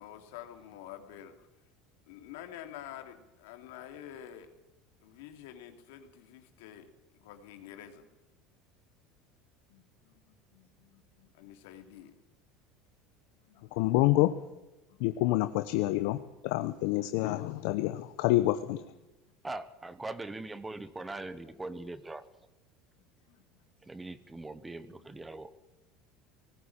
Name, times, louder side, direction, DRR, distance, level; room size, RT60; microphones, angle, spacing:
voice 1, 0.0-1.5 2.1-4.5 5.0-8.1 9.7-12.1 13.4-14.3 14.9-15.1 23.0-23.6 24.6-25.1, left 11 dB, 90° left, 6 dB, 2.9 m, -49 dB
voice 2, 13.7-14.3 15.0-16.2 16.4-18.8, left 16 dB, 70° left, 11 dB, 0.9 m, -27 dB
voice 3, 19.4-22.2 23.8-25.7, right 2 dB, 10° right, 15 dB, 1.0 m, -41 dB
19.5 x 15.5 x 8.9 m, 1.0 s
cardioid pair, 160°, 0 cm